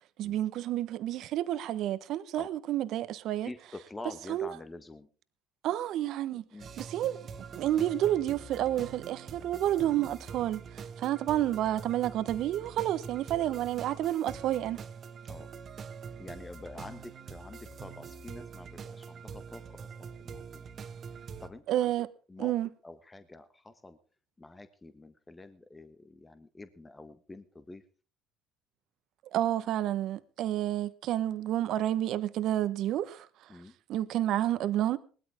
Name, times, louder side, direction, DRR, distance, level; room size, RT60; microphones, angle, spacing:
voice 1, 0.2-3.5 4.3-4.5 5.6-6.4 6.8-7.2 7.5-14.8 21.7-22.1 22.4-22.7 29.3-33.3 33.9-35.0, right 12 dB, 65° right, 1.1 m, -30 dB
voice 2, 3.4-5.1 6.5-6.7 15.2-15.5 16.2-20.7 21.1-21.9 22.3-22.6 22.8-24.0 24.4-27.8 33.5-33.8, left 2 dB, 20° left, 1.4 m, -47 dB
sound 1, 6.6-21.5, right 6 dB, 45° right, 1.7 m, -44 dB
19.5 x 13.0 x 3.6 m
hypercardioid pair, 70°, 0 cm